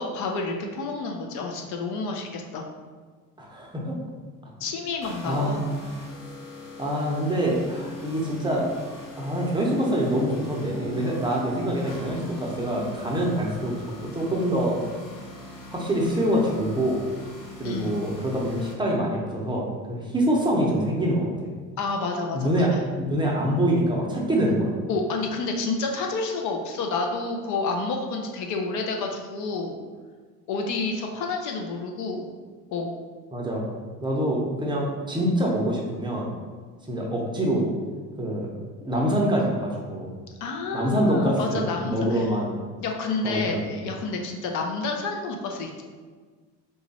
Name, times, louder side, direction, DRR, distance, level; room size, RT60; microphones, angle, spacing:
voice 1, 0.0-2.7 4.6-5.7 17.6-18.0 21.8-22.7 24.9-29.8 30.5-32.3 32.7-32.9 40.4-42.3 42.8-45.8, left 3 dB, 60° left, 2 dB, 0.5 m, -29 dB
voice 2, 3.4-4.0 5.2-5.8 6.8-8.7 9.2-13.7 14.0-14.8 15.7-17.0 17.6-21.5 22.3-22.7 22.9-24.8 33.3-33.7 34.0-36.3 36.9-37.7 38.2-38.5 38.8-40.1 40.7-42.5 43.2-43.6, equal, 15° right, -3 dB, 0.6 m, -25 dB
sound 1, 5.0-18.7, left 2 dB, 80° left, 0.9 m, -41 dB
3.0 x 2.3 x 4.0 m, 1.5 s
cardioid pair, 115°, 33 cm